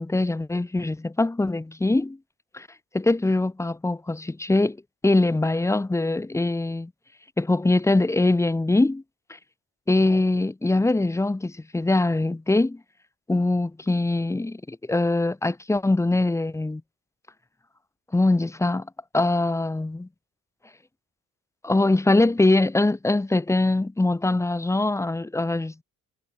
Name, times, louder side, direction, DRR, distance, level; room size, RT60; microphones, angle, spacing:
voice 1, 0.0-2.2 2.5-2.7 2.9-4.8 5.0-6.9 7.4-9.0 9.9-12.8 13.3-16.8 18.1-18.9 19.1-20.1 21.6-25.8, left 2 dB, 10° left, 0.7 m, -22 dB
cardioid pair, 90°, 30 cm